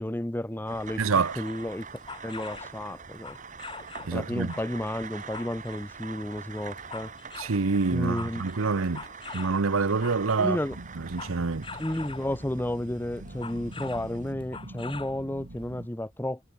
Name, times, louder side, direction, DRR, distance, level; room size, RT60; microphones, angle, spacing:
voice 1, 0.0-1.9 2.2-3.4 4.1-7.1 7.9-8.4 10.4-10.8 11.8-16.4, left 1 dB, 10° left, 0.6 m, -32 dB
sound 1, 0.7-14.3, right 5 dB, 40° right, 2.8 m, -44 dB
sound 2, 1.0-2.8 3.2-4.2 4.5-5.9 6.4-7.6 7.9-10.5 10.9-12.4 13.2-14.1 14.4-15.2 15.6-15.7, left 4 dB, 25° left, 4.7 m, -43 dB
voice 2, 1.0-1.4 4.0-4.5 7.4-9.1 9.3-10.6 11.0-11.7, right 4 dB, 90° right, 0.8 m, -26 dB
sound 3, 10.7-15.9, right 1 dB, 65° right, 1.6 m, -44 dB
head